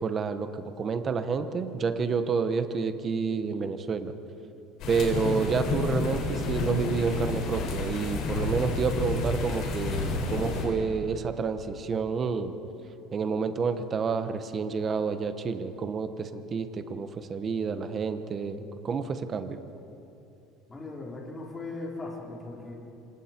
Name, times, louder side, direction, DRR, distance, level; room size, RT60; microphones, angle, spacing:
voice 1, 0.0-4.1 4.9-12.5 13.1-19.6, right 5 dB, 25° right, 9 dB, 1.1 m, -29 dB
sound 1, 4.8-10.6, left 3 dB, 45° left, 5.5 m, -30 dB
voice 2, 20.7-22.7, left 2 dB, 15° left, -2 dB, 3.7 m, -38 dB
27.0 x 26.5 x 4.5 m, 2.9 s
cardioid pair, 160°, 0 cm